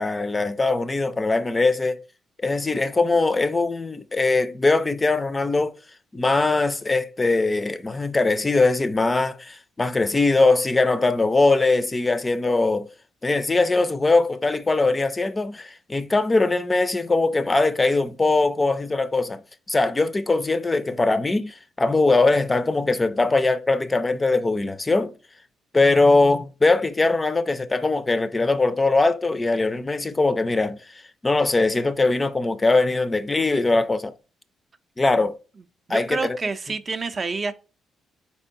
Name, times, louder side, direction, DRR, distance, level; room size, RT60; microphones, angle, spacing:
voice 1, 0.0-2.0 2.4-5.7 6.1-12.9 13.2-19.4 19.7-25.1 25.7-30.8 31.2-34.1 35.0-35.4 35.9-36.4, left 3 dB, 20° left, 0.4 m, -21 dB
voice 2, 35.9-37.5, right 4 dB, 35° right, 0.4 m, -28 dB
4.3 x 4.3 x 2.7 m
cardioid pair, 90°, 0 cm